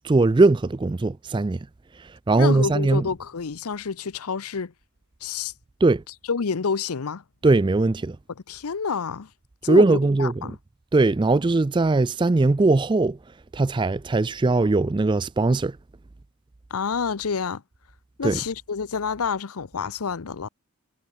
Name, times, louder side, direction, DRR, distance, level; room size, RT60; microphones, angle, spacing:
voice 1, 0.0-1.7 2.0-3.1 5.8-6.0 7.4-8.2 9.7-10.6 10.9-13.2 13.5-15.8 18.2-18.4, right 3 dB, 20° right, 0.3 m, -20 dB
voice 2, 2.4-4.7 5.2-5.5 6.3-7.2 8.5-9.3 9.6-9.9 10.2-10.6 16.7-17.6 18.2-20.5, left 5 dB, 80° left, 0.7 m, -28 dB
head